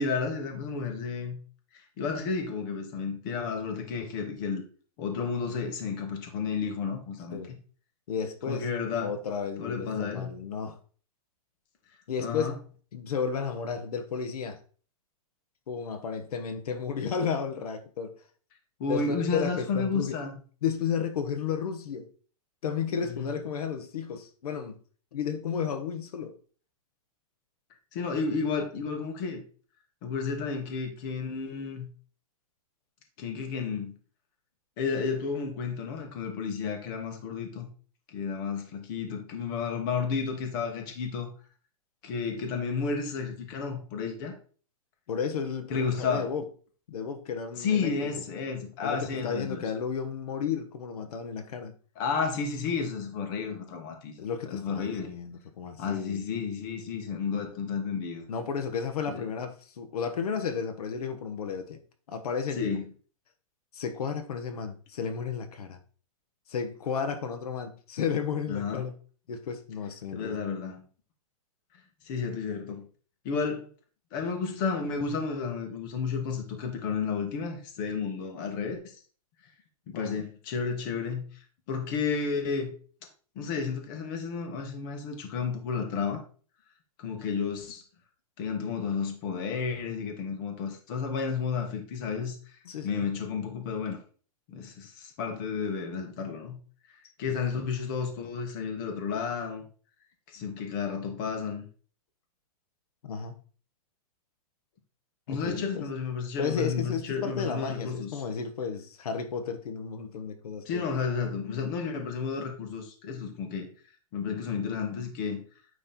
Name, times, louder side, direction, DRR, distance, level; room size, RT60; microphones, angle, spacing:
voice 1, 0.0-1.4 1.7-4.7 5.0-7.4 8.5-9.1 9.6-10.3 12.2-12.5 18.8-20.3 23.1-23.3 27.9-29.4 30.0-31.9 33.2-33.9 34.8-37.7 38.1-41.3 42.0-44.3 45.7-46.3 47.6-49.6 52.0-54.1 54.5-55.1 55.8-58.2 59.1-59.2 62.6-62.8 68.5-68.9 70.1-70.9 72.0-72.9 73.2-73.7 74.1-78.8 79.9-81.2 81.7-82.7 83.3-86.2 87.0-87.8 88.4-92.6 92.8-94.0 94.5-96.6 97.2-99.6 100.3-101.7 105.3-108.1 110.6-113.7 114.1-115.4, left 5 dB, 35° left, 1.3 m, -32 dB
voice 2, 8.1-8.7 9.0-10.8 12.1-12.6 12.9-14.6 15.7-18.2 18.9-20.2 20.6-22.1 22.6-24.8 25.1-26.3 45.1-46.5 46.9-48.1 48.8-51.7 54.2-56.3 58.3-61.8 62.1-62.8 63.7-65.8 66.5-68.9 69.3-70.4 79.9-80.2 92.6-93.0 97.3-97.6 103.0-103.4 105.3-105.8 106.4-110.9, left 6 dB, 85° left, 1.1 m, -33 dB
9.2 x 3.3 x 4.2 m
hypercardioid pair, 165°, 19 cm